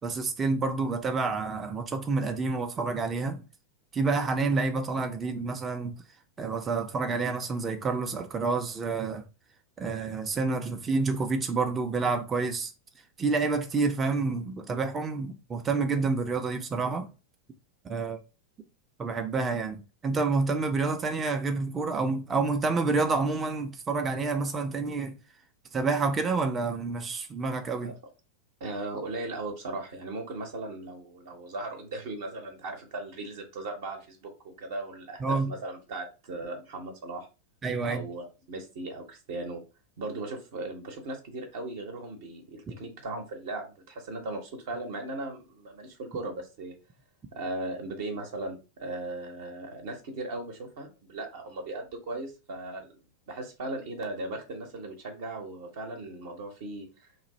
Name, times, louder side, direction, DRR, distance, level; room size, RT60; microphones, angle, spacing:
voice 1, 0.0-3.4 3.9-5.9 6.4-9.2 9.8-12.7 13.2-17.1 17.8-18.2 19.0-25.2 25.7-27.9 35.2-35.5 37.6-38.0, right 4 dB, 20° right, 0.5 m, -28 dB
voice 2, 28.6-37.3 37.8-39.6 40.0-46.8 47.3-52.9 53.3-57.1, right 2 dB, 55° right, 0.8 m, -37 dB
3.0 x 2.6 x 4.0 m
figure-of-eight pair, 90°, 0 cm